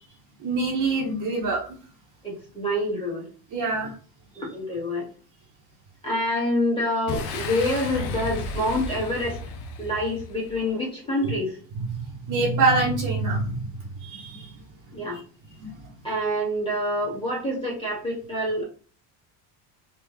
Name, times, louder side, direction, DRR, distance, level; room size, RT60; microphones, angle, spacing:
voice 1, 0.4-1.8 3.5-3.9 11.9-13.7 14.0-14.5 15.1-15.2 15.6-15.7, right 3 dB, 40° right, 0 dB, 0.9 m, -25 dB
voice 2, 2.2-3.3 4.4-5.1 6.0-9.4 9.8-11.6 14.9-15.2 16.0-18.6, left 1 dB, 10° left, -3 dB, 1.7 m, -27 dB
Boom, 7.1-10.7, left 3 dB, 55° left, 0.8 m, -33 dB
3.5 x 2.4 x 3.1 m, 0.39 s
cardioid pair, 115°, 48 cm